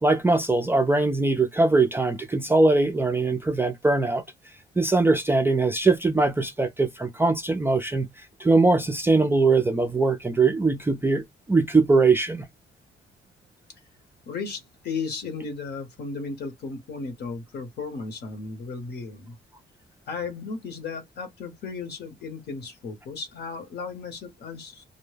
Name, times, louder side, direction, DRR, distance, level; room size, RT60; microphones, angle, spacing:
voice 1, 0.0-4.2 4.8-12.5, right 3 dB, 10° right, 0.3 m, -21 dB
voice 2, 14.3-19.4 20.1-24.8, left 4 dB, 60° left, 0.9 m, -35 dB
2.1 x 2.1 x 3.2 m
cardioid pair, 145°, 19 cm